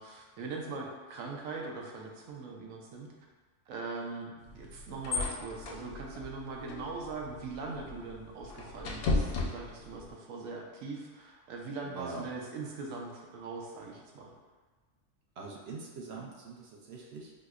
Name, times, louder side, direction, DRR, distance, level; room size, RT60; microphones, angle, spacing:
voice 1, 0.0-3.1 3.7-14.3, right 3 dB, 90° right, -1 dB, 1.0 m, -41 dB
sound 1, 4.4-10.1, left 3 dB, 60° left, 0.6 m, -36 dB
voice 2, 11.8-12.3 15.4-17.3, right 4 dB, 65° right, -3 dB, 0.7 m, -43 dB
4.9 x 2.1 x 2.3 m, 1.3 s
omnidirectional pair, 1.4 m